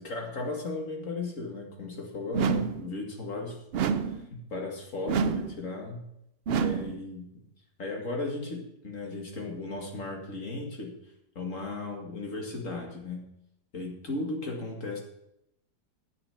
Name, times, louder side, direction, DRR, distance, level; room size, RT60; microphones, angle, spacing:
voice 1, 0.0-3.6 4.0-6.1 6.5-7.4 7.8-10.9 11.4-13.3 13.7-15.0, left 2 dB, 50° left, 1 dB, 2.4 m, -36 dB
sound 1, 2.3-2.9 3.7-4.3 5.1-5.6 6.5-7.0, right 6 dB, 70° right, 0.5 m, -28 dB
10.0 x 8.1 x 5.9 m, 0.78 s
omnidirectional pair, 1.8 m